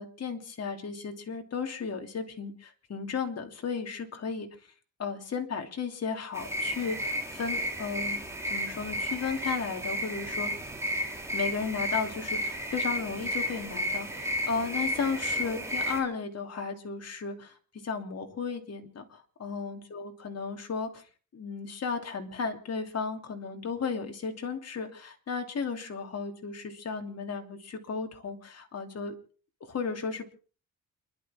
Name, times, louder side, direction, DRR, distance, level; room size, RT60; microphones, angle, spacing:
voice 1, 0.0-4.5 5.0-8.2 8.5-10.5 11.3-21.0 21.3-29.1 29.6-30.3, left 5 dB, 45° left, 4 dB, 3.1 m, -34 dB
sound 1, 6.3-16.0, equal, 10° right, 4.1 m, -33 dB
29.5 x 12.0 x 3.7 m, 0.41 s
cardioid pair, 125°, 35 cm